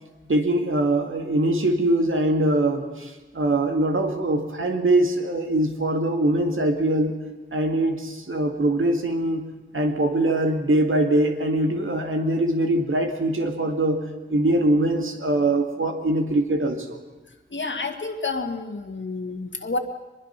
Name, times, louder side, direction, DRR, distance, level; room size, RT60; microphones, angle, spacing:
voice 1, 0.3-7.2 7.5-9.5 9.7-14.0 14.3-17.0, right 1 dB, 85° right, 3 dB, 2.2 m, -22 dB
voice 2, 17.5-19.8, left 3 dB, 65° left, 5 dB, 1.9 m, -29 dB
23.0 x 22.0 x 5.9 m, 1.1 s
wide cardioid pair, 75°, 20 cm